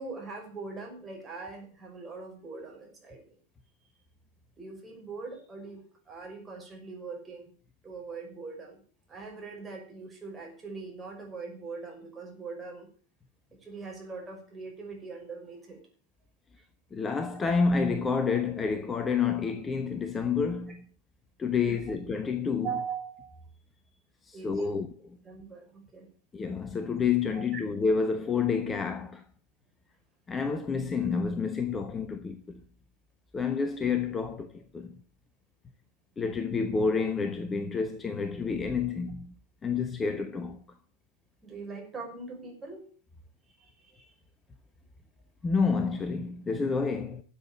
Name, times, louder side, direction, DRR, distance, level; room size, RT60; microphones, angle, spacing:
voice 1, 0.0-3.2 4.6-7.5 7.8-8.8 9.1-12.9 13.6-15.8 21.6-21.8 22.6-23.4 24.3-24.8 25.2-26.1 27.3-27.6 41.4-42.8 43.5-44.1, right 4 dB, 15° right, 5.8 m, -41 dB
voice 2, 16.9-20.8 21.4-22.7 24.2-24.9 26.3-29.2 30.3-32.6 33.3-35.0 36.2-39.3 39.6-40.6 45.4-47.2, left 5 dB, 15° left, 1.1 m, -29 dB
13.0 x 7.7 x 8.9 m
figure-of-eight pair, 90°, 0 cm